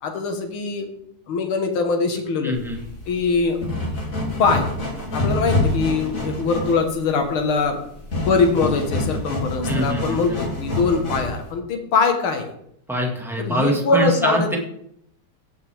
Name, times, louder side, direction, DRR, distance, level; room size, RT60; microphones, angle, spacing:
voice 1, 0.0-0.9 1.3-2.6 3.1-3.6 4.4-4.7 5.1-7.8 8.3-12.5 13.4-14.6, left 4 dB, 75° left, 4 dB, 2.2 m, -22 dB
voice 2, 2.4-2.8 9.7-10.4 12.9-14.6, equal, ahead, 0 dB, 1.4 m, -24 dB
sound 1, 2.5-11.5, left 1 dB, 40° left, 2.8 m, -27 dB
16.0 x 6.1 x 3.4 m, 0.71 s
omnidirectional pair, 2.4 m